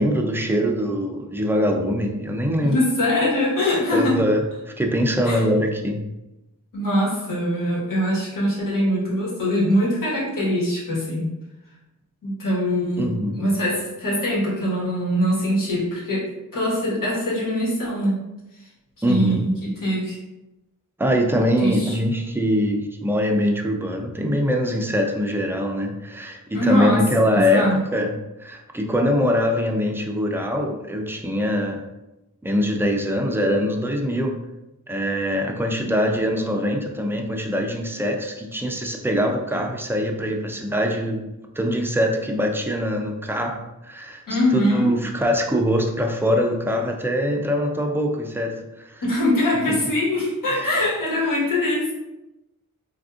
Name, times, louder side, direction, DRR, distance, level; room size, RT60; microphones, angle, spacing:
voice 1, 0.0-2.8 3.9-6.0 13.0-13.5 19.0-19.4 21.0-28.1 28.4-31.8 32.4-34.4 34.9-41.2 41.6-44.2 44.5-49.0 49.7-49.8 50.5-50.7, equal, 5° right, 2 dB, 0.3 m, -23 dB
voice 2, 2.6-4.2 5.2-5.4 6.7-11.3 12.2-13.1 13.4-18.2 19.1-20.2 21.6-22.0 26.5-27.0 27.3-27.8 44.3-44.9 49.0-51.9, left 1 dB, 75° left, -6 dB, 1.3 m, -22 dB
3.5 x 2.5 x 2.4 m, 0.97 s
wide cardioid pair, 90°, 33 cm